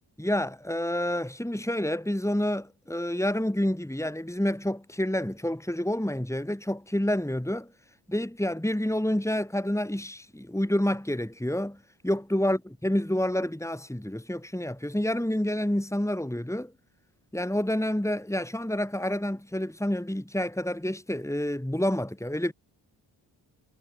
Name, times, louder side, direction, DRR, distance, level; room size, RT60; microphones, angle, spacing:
voice 1, 0.2-7.7 8.1-16.7 17.3-22.5, left 1 dB, 5° left, 5.0 m, -28 dB
supercardioid pair, 40°, 48 cm